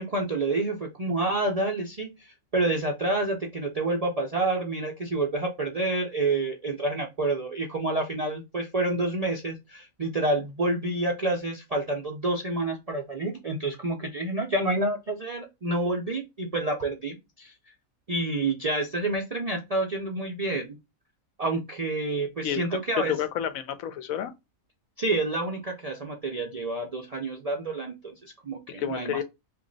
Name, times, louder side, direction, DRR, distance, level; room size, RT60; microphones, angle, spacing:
voice 1, 0.0-17.5 18.1-20.8 21.4-23.1 25.0-29.2, right 2 dB, 55° right, 0.4 m, -28 dB
voice 2, 23.1-24.3 28.8-29.2, left 9 dB, 75° left, 1.0 m, -30 dB
3.1 x 2.5 x 3.8 m
omnidirectional pair, 1.5 m